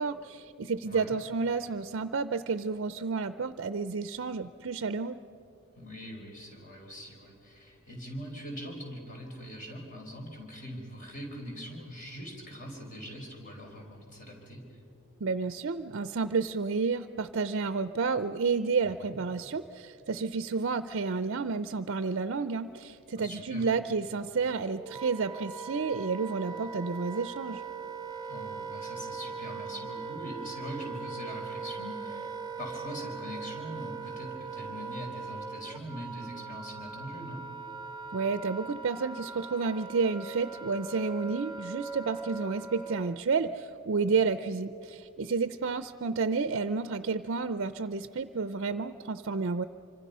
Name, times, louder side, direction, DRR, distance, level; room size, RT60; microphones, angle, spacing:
voice 1, 0.0-5.2 15.2-27.6 38.1-49.6, right 4 dB, 60° right, 12 dB, 0.5 m, -31 dB
voice 2, 0.8-1.1 5.8-14.6 19.0-19.2 23.1-23.7 28.2-37.4, equal, 40° left, 1 dB, 4.7 m, -42 dB
Wind instrument woodwind instrument, 24.4-43.2, right 5 dB, 20° right, 0.7 m, -40 dB
26.5 x 25.5 x 5.5 m, 2.7 s
head